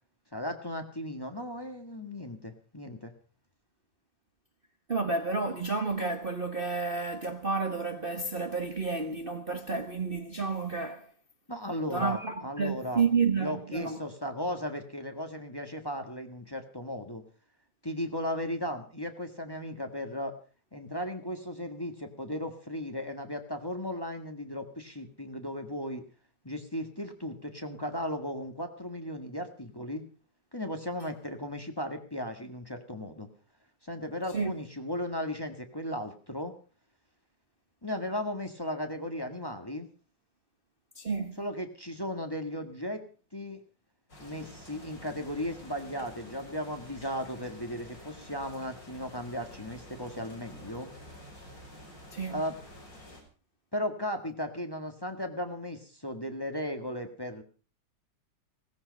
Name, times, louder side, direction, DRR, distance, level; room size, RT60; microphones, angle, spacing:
voice 1, 0.3-3.1 11.5-13.0 13.4-17.2 17.8-20.3 20.7-26.0 26.4-30.0 30.5-33.3 33.8-36.5 37.8-39.9 41.4-43.0 43.3-43.6 44.2-50.9 52.3-52.6 53.7-57.4, equal, 15° left, 1.6 m, -36 dB
voice 2, 4.9-11.1 11.9-14.0 34.3-34.5 41.0-41.4 52.1-52.4, right 4 dB, 35° right, 1.3 m, -30 dB
sound 1, 44.1-53.2, left 1 dB, 50° left, 7.0 m, -49 dB
17.5 x 15.0 x 5.3 m
omnidirectional pair, 2.0 m